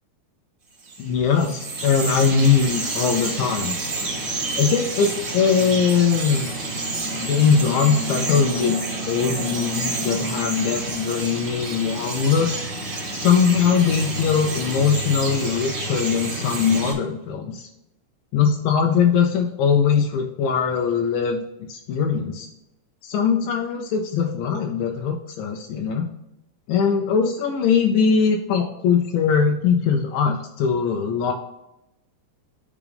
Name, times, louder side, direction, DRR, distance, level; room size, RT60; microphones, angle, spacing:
Bird vocalization bird call bird song, 0.8-16.9, right 2 dB, 45° right, 1.5 m, -29 dB
voice 1, 1.0-3.8 4.6-6.5 7.1-12.5 13.1-17.6 18.3-21.4 21.7-22.5 23.0-26.1 26.7-31.3, left 6 dB, 90° left, 4 dB, 2.0 m, -21 dB
11.0 x 3.6 x 3.4 m, 0.88 s
omnidirectional pair, 4.7 m